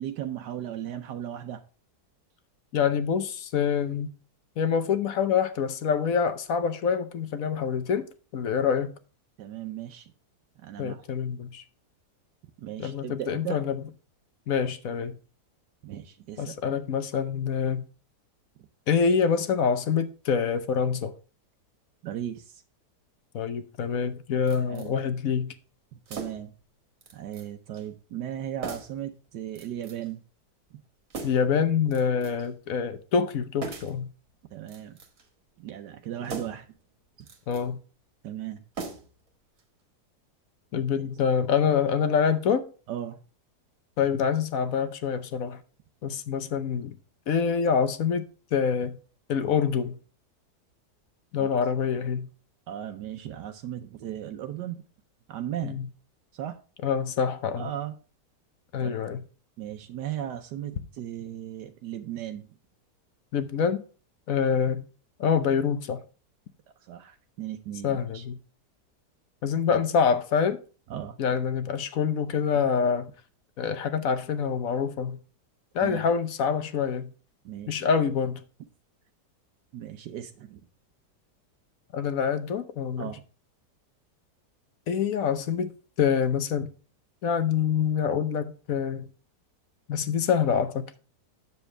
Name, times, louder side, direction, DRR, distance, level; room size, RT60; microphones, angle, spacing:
voice 1, 0.0-1.6 9.4-10.1 10.6-11.1 12.6-13.6 15.8-16.7 22.0-22.6 24.7-25.0 26.1-26.5 27.1-30.2 34.5-35.0 35.6-36.7 38.2-38.6 42.9-43.2 51.4-51.5 52.7-54.8 55.3-55.8 56.3-56.6 57.6-57.9 58.8-58.9 59.6-62.5 66.8-68.3 70.9-71.2 75.8-76.0 77.4-77.8 79.7-80.6 83.0-83.2, right 11 dB, 80° right, 1.3 m, -36 dB
voice 2, 2.7-4.1 4.6-8.1 8.3-8.9 10.8-11.6 12.8-13.8 14.5-15.2 16.4-17.8 18.9-21.1 23.3-25.5 31.2-34.1 37.5-37.8 40.7-42.6 44.0-45.6 46.0-47.0 47.3-48.2 48.5-49.0 49.3-50.0 51.3-52.3 55.6-55.8 56.8-57.7 58.7-59.2 63.3-63.8 64.3-64.8 65.2-66.0 67.8-68.4 69.4-70.6 71.2-73.1 73.6-75.2 75.7-77.1 77.7-78.4 81.9-83.1 84.9-85.7 86.0-86.7 87.2-89.1 89.9-91.0, left 6 dB, 60° left, 1.1 m, -26 dB
sound 1, 24.5-24.9 26.1-26.6 27.0-27.5 27.7-27.9 28.6-29.0 29.6-30.1 31.1-31.6 31.9-32.5 33.6-34.0 34.6-35.3 36.2-36.7 37.2-37.7 38.7-39.3 39.6-39.7, right 4 dB, 55° right, 1.7 m, -40 dB
8.2 x 7.1 x 3.3 m
omnidirectional pair, 1.8 m